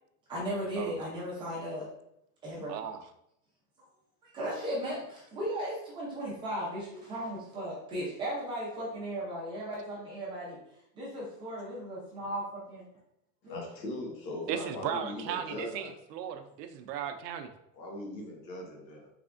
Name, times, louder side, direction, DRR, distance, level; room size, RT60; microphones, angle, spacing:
voice 1, 0.3-1.9 2.4-2.8 4.2-10.6 10.9-12.9 13.4-13.6 15.7-15.9, equal, 10° right, -7 dB, 0.5 m, -36 dB
voice 2, 2.7-3.0 14.5-17.5, right 9 dB, 75° right, 8 dB, 0.6 m, -36 dB
voice 3, 13.4-15.9 17.7-19.1, left 1 dB, 90° left, 0 dB, 1.4 m, -40 dB
3.4 x 3.3 x 2.5 m, 0.78 s
supercardioid pair, 165°, 50 cm